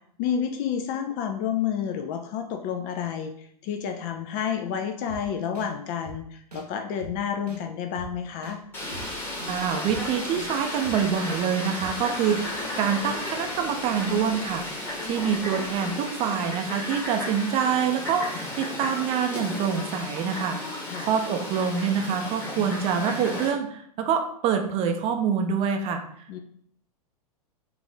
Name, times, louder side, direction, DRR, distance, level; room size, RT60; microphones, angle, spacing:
voice 1, 0.2-8.6 20.9-21.1 26.3-26.4, left 8 dB, 35° left, 5 dB, 0.4 m, -30 dB
sound 1, 5.1-5.2 5.6-5.7 6.0-6.2 6.5-6.6 7.0-7.1 7.5-7.6 8.0-8.1 8.4-8.6 8.9-9.0 9.4-9.5 9.9-10.0 10.3-10.5 10.8-11.0 11.3-11.4 11.8-11.9 12.3-12.4, right 1 dB, 85° right, 0.7 m, -40 dB
Car, 8.7-17.2, left 4 dB, 55° left, 0.9 m, -45 dB
Fowl, 8.7-23.5, left 1 dB, 10° left, 1.2 m, -34 dB
voice 2, 9.5-14.7 15.0-20.6 21.0-26.0, right 7 dB, 30° right, 5 dB, 0.5 m, -26 dB
4.5 x 2.5 x 3.4 m, 0.66 s
figure-of-eight pair, 95°, 20 cm